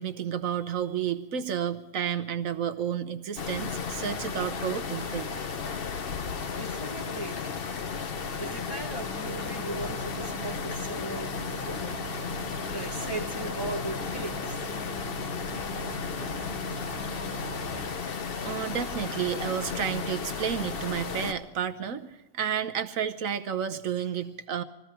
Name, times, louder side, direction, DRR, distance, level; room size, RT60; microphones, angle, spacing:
voice 1, 0.0-5.3 17.7-17.9 18.4-24.6, right 8 dB, 65° right, 10 dB, 1.2 m, -31 dB
sound 1, 3.4-21.3, left 5 dB, 45° left, 0.9 m, -34 dB
sound 2, 5.9-6.4, left 5 dB, 75° left, 1.4 m, -41 dB
voice 2, 6.6-7.5 8.4-12.1 12.7-14.7 24.0-24.1, right 2 dB, 15° left, -1 dB, 1.2 m, -38 dB
sound 3, 9.3-17.9, right 6 dB, 85° right, 1.3 m, -42 dB
20.5 x 15.0 x 4.5 m, 1.0 s
omnidirectional pair, 1.6 m